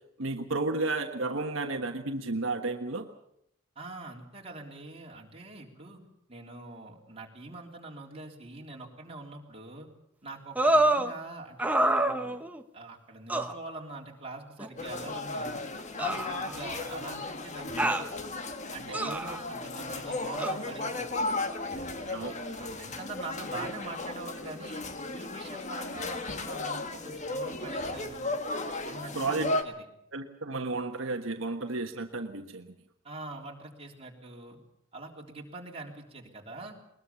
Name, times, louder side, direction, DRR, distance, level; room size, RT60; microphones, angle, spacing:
voice 1, 0.2-3.1 18.9-19.2 22.1-22.3 29.1-29.5 30.1-32.7, right 3 dB, 70° right, 4 dB, 1.4 m, -32 dB
voice 2, 3.8-6.0 6.3-9.9 10.2-12.4 12.7-15.6 16.0-18.1 18.7-21.2 21.7-24.8 25.1-28.3 28.8-29.7 33.0-34.6 34.9-36.8, right 2 dB, 30° right, -1 dB, 3.6 m, -44 dB
sound 1, 10.6-11.1 11.6-12.6 13.3-13.5 14.6-14.7 16.0-16.9 17.8-18.1 18.9-19.4 20.4-20.5, right 1 dB, 5° right, 1.1 m, -27 dB
sound 2, 14.8-29.6, left 2 dB, 35° left, 1.5 m, -35 dB
21.5 x 20.5 x 7.1 m, 0.76 s
head